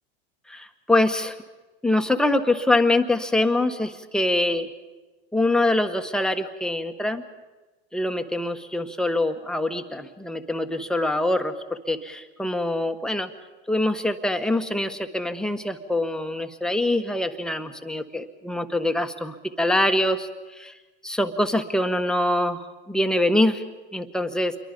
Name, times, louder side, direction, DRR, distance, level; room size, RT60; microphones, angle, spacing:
voice 1, 0.5-1.4 1.8-4.7 5.3-7.2 7.9-13.3 13.7-20.7 21.0-23.6 23.9-24.6, left 1 dB, ahead, 6 dB, 1.4 m, -24 dB
28.0 x 23.0 x 5.4 m, 1.2 s
supercardioid pair, 110°, 31 cm